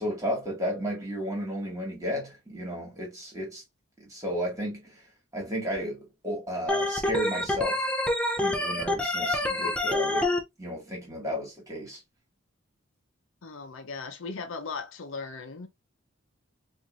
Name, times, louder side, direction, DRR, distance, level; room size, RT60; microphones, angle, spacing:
voice 1, 0.0-3.6 4.0-5.0 5.3-7.9 8.4-10.3 10.6-12.0, equal, 15° right, 1.7 m, -33 dB
Organ, 6.7-10.4, left 1 dB, 5° left, 0.5 m, -27 dB
voice 2, 13.4-15.7, left 4 dB, 75° left, 0.6 m, -37 dB
4.5 x 2.6 x 2.4 m
head